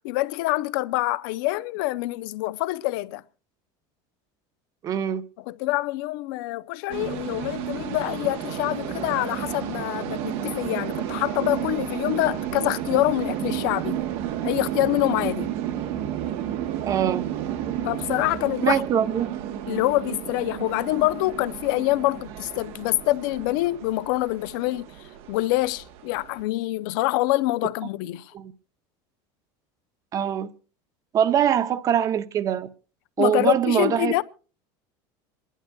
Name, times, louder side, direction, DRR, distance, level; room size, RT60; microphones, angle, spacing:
voice 1, 0.0-3.2 5.5-14.0 14.4-15.5 17.8-18.8 19.7-24.9 25.3-28.3 33.2-34.2, left 18 dB, 75° left, 0.5 m, -25 dB
voice 2, 4.8-5.2 16.8-17.2 18.6-19.3 28.3-28.5 30.1-30.5 31.1-32.7 33.2-34.2, right 9 dB, 30° right, 0.7 m, -23 dB
sound 1, 6.9-26.4, right 11 dB, 60° right, 0.9 m, -32 dB
27.5 x 11.0 x 2.3 m
cardioid pair, 150°, 11 cm